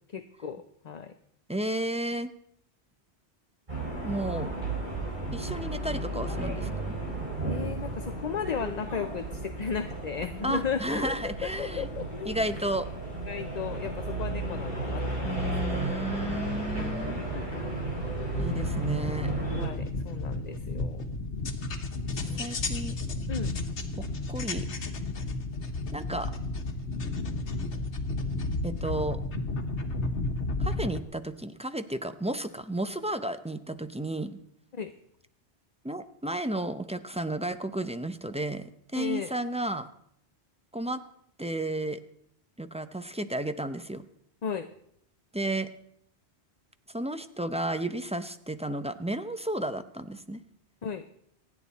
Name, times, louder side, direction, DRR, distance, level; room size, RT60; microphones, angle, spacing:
voice 1, 0.1-1.1 7.5-12.4 13.3-15.9 16.2-17.5 19.6-21.0 22.3-22.4 23.3-23.5 34.7-34.9 39.0-39.3 44.4-44.7 50.8-51.1, left 6 dB, 45° left, 9 dB, 0.7 m, -35 dB
voice 2, 1.5-2.3 4.0-4.5 5.3-6.9 10.4-11.9 12.2-12.9 15.2-17.2 18.4-19.3 22.1-23.0 24.0-24.7 25.9-26.3 28.6-29.2 30.6-34.4 35.8-39.9 40.7-41.0 41.4-42.0 42.6-44.0 45.3-45.7 46.9-50.4, right 1 dB, 10° right, 10 dB, 0.5 m, -33 dB
sound 1, 3.7-19.7, right 2 dB, 45° right, 5.2 m, -34 dB
sound 2, 18.3-31.0, left 2 dB, 85° left, 1.6 m, -32 dB
27.0 x 9.4 x 4.1 m, 0.71 s
omnidirectional pair, 1.1 m